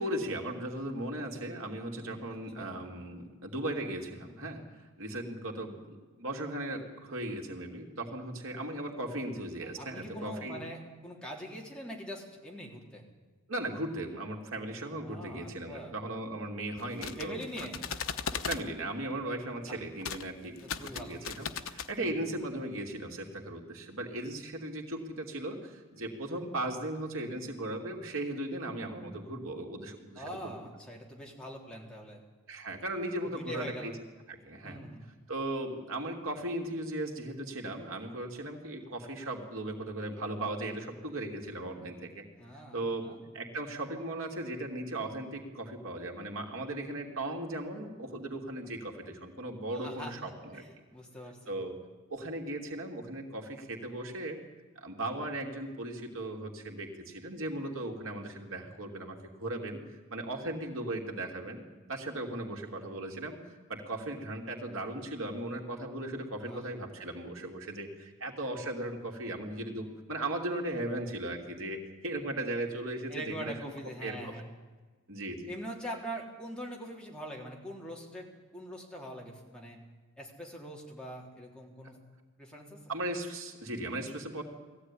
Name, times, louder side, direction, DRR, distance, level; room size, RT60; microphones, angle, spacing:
voice 1, 0.0-4.6 5.0-5.8 6.2-10.6 13.5-17.8 18.4-30.5 32.5-33.9 34.3-34.8 35.3-42.2 42.7-43.1 43.3-50.6 51.5-51.7 52.1-54.4 54.8-59.8 60.1-63.4 63.7-73.5 74.0-74.3 75.1-75.5 82.9-84.4, right 1 dB, 75° right, 1 dB, 3.0 m, -37 dB
voice 2, 1.9-2.2 2.6-2.8 9.8-13.0 15.0-15.9 17.1-17.8 19.4-19.8 20.6-21.2 22.0-22.3 30.2-32.2 33.3-33.9 34.6-35.1 42.4-43.2 49.7-51.6 66.5-66.6 73.1-74.5 75.5-79.8 80.2-82.0 82.4-82.8, equal, 5° left, -2 dB, 3.7 m, -43 dB
sound 1, 16.8-18.6 20.0-20.2 20.6-21.9, left 7 dB, 80° left, 1.0 m, -37 dB
20.0 x 15.0 x 10.0 m, 1.3 s
head